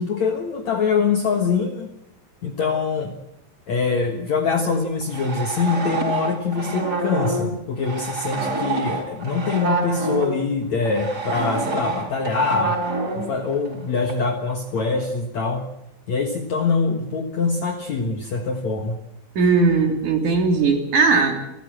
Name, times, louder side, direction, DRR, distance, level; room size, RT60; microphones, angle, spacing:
voice 1, 0.0-1.9 2.4-3.1 3.7-12.8 13.2-15.6 16.1-19.0, left 4 dB, 60° left, 5 dB, 2.1 m, -24 dB
sound 1, 4.7-10.4 10.8-13.8 14.1-14.2 14.8-15.0, right 3 dB, 20° right, 5.3 m, -27 dB
voice 2, 19.4-21.4, right 4 dB, 50° right, 3 dB, 4.3 m, -18 dB
29.0 x 14.5 x 7.7 m, 0.86 s
omnidirectional pair, 4.9 m